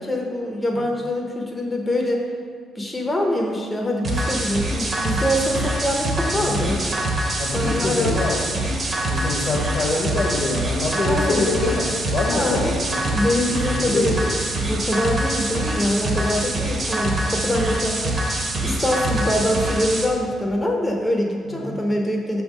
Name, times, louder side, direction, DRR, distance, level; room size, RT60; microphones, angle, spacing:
voice 1, 0.0-2.2 2.8-6.7 7.5-8.2 11.0-11.6 12.3-12.8 13.1-22.4, left 1 dB, 15° left, 0 dB, 0.7 m, -24 dB
sound 1, 4.0-20.0, right 1 dB, 40° right, 1.0 m, -25 dB
voice 2, 6.3-6.8 7.4-8.4 9.1-13.2 13.5-14.1 19.0-19.2 21.5-21.8, left 3 dB, 65° left, 0 dB, 1.2 m, -25 dB
5.7 x 3.5 x 5.1 m, 2.2 s
cardioid pair, 90°, 0 cm